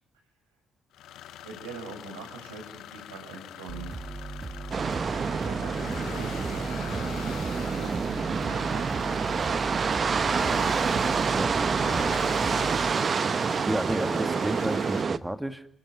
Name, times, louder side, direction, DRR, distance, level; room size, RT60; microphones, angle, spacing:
sound 1, 0.9-15.0, left 11 dB, 65° left, 1.2 m, -42 dB
voice 1, 1.4-3.9 4.8-6.6 7.6-9.9, right 4 dB, 80° right, 2 dB, 7.5 m, -43 dB
sound 2, 3.7-12.9, right 3 dB, 30° right, 3.1 m, -38 dB
sound 3, 4.7-15.2, right 5 dB, 45° right, 1.2 m, -27 dB
voice 2, 11.3-12.1 13.7-15.7, right 1 dB, 10° right, 9 dB, 2.2 m, -32 dB
29.0 x 21.0 x 9.6 m, 0.66 s
figure-of-eight pair, 45°, 0 cm